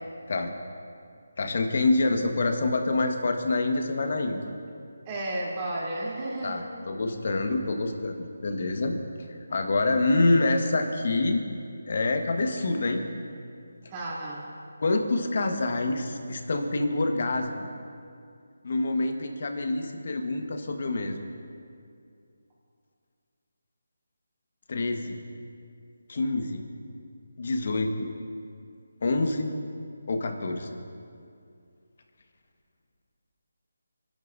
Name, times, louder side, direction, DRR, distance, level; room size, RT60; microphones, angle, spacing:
voice 1, 1.4-4.4 6.4-8.9 9.3-11.4 11.9-13.0 14.8-17.5 18.6-21.1 24.7-25.2 26.1-26.7 27.4-28.1 29.0-29.5 30.1-30.7, left 2 dB, 55° left, 4 dB, 1.5 m, -26 dB
voice 2, 5.1-6.7 13.9-14.5, right 1 dB, 25° right, -6 dB, 3.4 m, -32 dB
27.5 x 12.0 x 2.7 m, 2.4 s
figure-of-eight pair, 160°, 0 cm